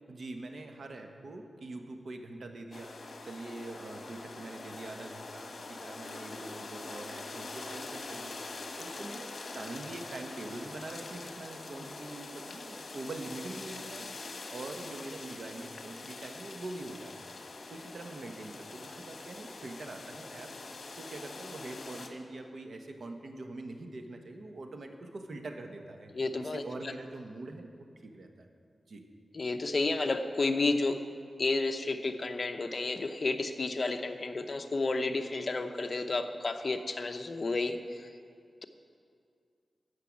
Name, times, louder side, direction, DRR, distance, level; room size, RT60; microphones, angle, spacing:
voice 1, 0.1-3.0 3.2-8.4 8.8-14.1 14.5-17.3 17.7-20.5 21.0-26.1 26.4-28.5 28.9-29.1, right 2 dB, 70° right, 5 dB, 1.2 m, -44 dB
sound 1, 2.7-22.1, left 3 dB, 65° left, 1.4 m, -44 dB
voice 2, 26.1-26.9 29.3-31.0 31.4-38.1, left 3 dB, 50° left, 7 dB, 0.8 m, -31 dB
13.5 x 6.6 x 8.6 m, 2.3 s
wide cardioid pair, 75°, 0 cm